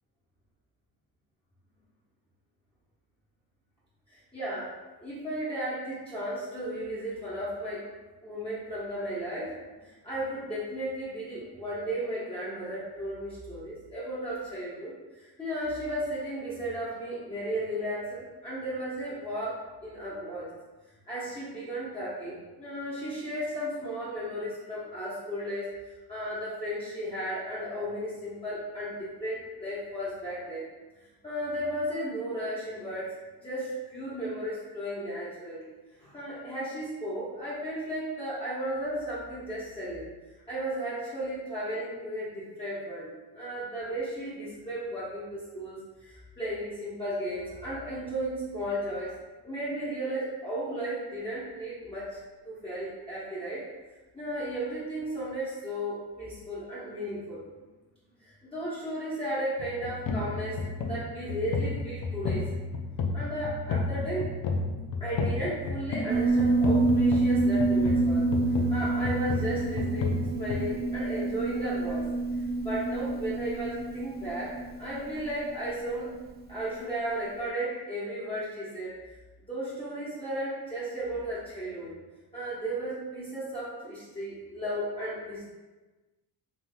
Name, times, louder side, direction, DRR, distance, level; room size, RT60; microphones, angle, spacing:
voice 1, 4.1-4.7 5.0-7.9 8.2-9.5 9.8-20.5 21.1-30.6 31.2-33.1 33.4-35.6 36.0-40.0 40.5-49.1 49.4-52.2 52.4-53.6 54.1-57.4 58.2-60.6 60.9-62.5 63.1-64.3 65.0-72.1 72.3-76.1 76.5-79.0 79.5-81.9 82.3-85.4, right 1 dB, 15° left, -11 dB, 1.1 m, -34 dB
sound 1, 59.6-70.6, left 3 dB, 55° left, 0.6 m, -32 dB
Piano, 66.1-76.8, right 3 dB, 25° right, 0.4 m, -28 dB
3.6 x 2.8 x 2.2 m, 1.2 s
cardioid pair, 75°, 41 cm